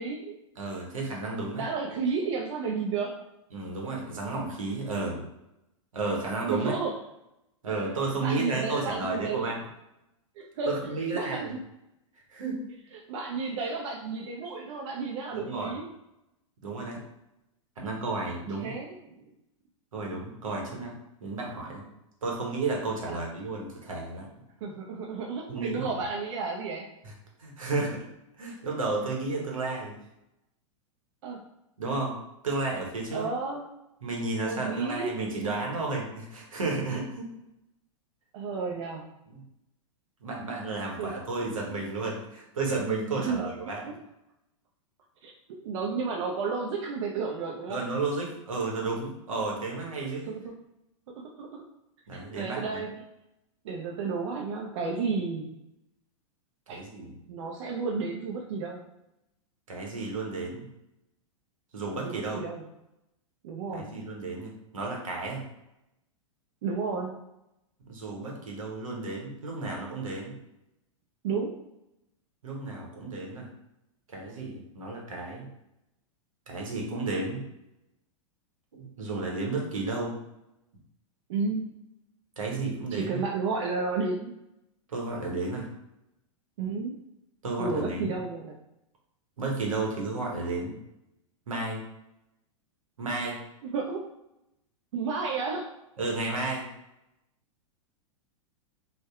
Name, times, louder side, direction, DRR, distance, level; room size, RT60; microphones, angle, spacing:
voice 1, 0.0-0.4 1.5-3.2 6.5-6.9 8.2-9.5 10.4-11.6 12.9-15.9 18.6-19.3 23.0-23.2 24.6-26.9 31.2-31.4 33.1-33.7 34.4-35.1 38.3-39.1 41.0-41.1 43.1-43.9 45.2-47.8 50.3-50.5 51.2-51.7 52.3-53.0 53.6-55.6 56.7-56.8 57.3-58.8 61.9-62.6 63.4-64.0 66.6-67.2 71.2-71.6 81.3-81.7 82.9-84.4 86.6-86.9 87.6-88.6 93.6-94.0 94.9-95.7, right 4 dB, 60° right, -1 dB, 0.4 m, -32 dB
voice 2, 0.6-1.6 3.5-5.3 5.9-6.7 7.6-9.6 10.7-11.5 12.3-12.6 15.3-15.8 16.6-17.0 17.8-18.7 19.9-20.9 21.2-21.9 22.2-24.3 25.5-25.9 27.0-27.1 27.4-28.0 28.4-30.0 31.8-32.2 32.4-33.3 34.0-37.2 39.3-39.4 40.2-43.8 47.7-50.3 52.1-52.8 56.7-57.1 59.7-60.7 61.7-62.4 63.7-65.4 67.9-70.3 72.4-73.5 74.1-75.5 76.5-77.4 78.7-80.2 82.4-83.2 84.9-85.7 87.4-88.1 89.4-90.7 91.5-91.8 93.0-93.4 96.0-96.7, right 3 dB, 85° right, -1 dB, 0.8 m, -32 dB
2.6 x 2.1 x 2.3 m, 0.88 s
hypercardioid pair, 110°, 17 cm